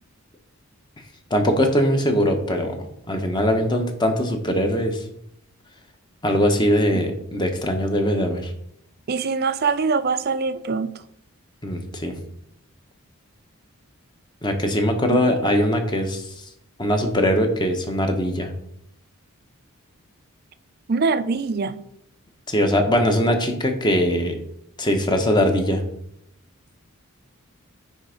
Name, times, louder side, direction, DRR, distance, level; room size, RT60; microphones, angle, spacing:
voice 1, 1.3-2.8 3.1-5.0 6.2-8.5 11.6-12.2 14.4-16.5 16.8-18.5 22.5-24.4 24.8-25.8, equal, 20° left, 0.9 m, -21 dB
voice 2, 9.1-10.9 15.1-15.2 20.9-21.8, right 4 dB, 45° right, 0.4 m, -23 dB
9.3 x 3.4 x 5.0 m
head